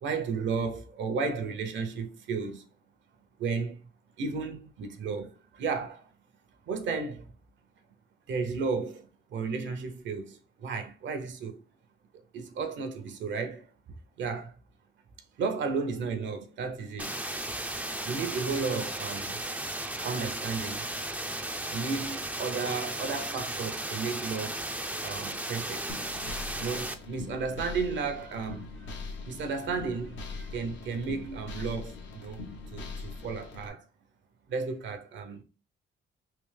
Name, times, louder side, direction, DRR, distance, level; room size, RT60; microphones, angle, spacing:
voice 1, 0.0-2.7 3.4-3.8 4.2-6.1 6.7-7.3 8.3-11.6 12.3-14.5 15.4-17.1 18.0-19.4 20.0-20.9 21.7-24.7 25.0-25.9 26.6-28.9 29.2-32.4 32.7-33.8 34.5-35.4, right 5 dB, 70° right, 0.8 m, -33 dB
sound 1, 17.0-26.9, right 1 dB, 5° right, 0.5 m, -35 dB
sound 2, 25.9-33.7, left 3 dB, 70° left, 1.0 m, -41 dB
3.3 x 2.8 x 3.3 m
cardioid pair, 90°, 20 cm